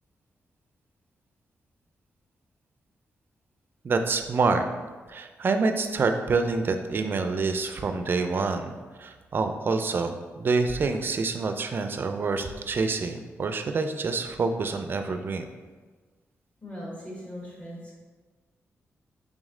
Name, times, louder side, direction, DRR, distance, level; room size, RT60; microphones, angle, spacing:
voice 1, 3.8-4.6 5.1-8.7 9.0-15.4, right 4 dB, 45° right, 7 dB, 0.4 m, -27 dB
voice 2, 16.6-17.9, equal, 25° left, -5 dB, 1.4 m, -39 dB
3.5 x 3.1 x 3.7 m, 1.4 s
cardioid pair, 95°, 5 cm